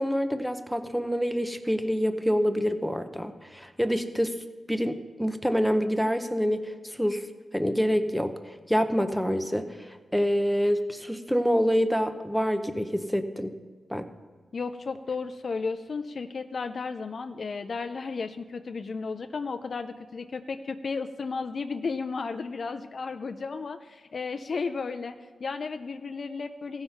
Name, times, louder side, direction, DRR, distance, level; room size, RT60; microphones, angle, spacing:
voice 1, 0.0-4.4 4.7-7.2 7.5-8.3 8.7-9.7 10.1-13.5 13.9-14.1, equal, ahead, 8 dB, 0.7 m, -26 dB
voice 2, 14.5-26.8, left 4 dB, 55° left, 8 dB, 0.4 m, -34 dB
15.5 x 5.7 x 5.7 m, 1.4 s
cardioid pair, 80°, 0 cm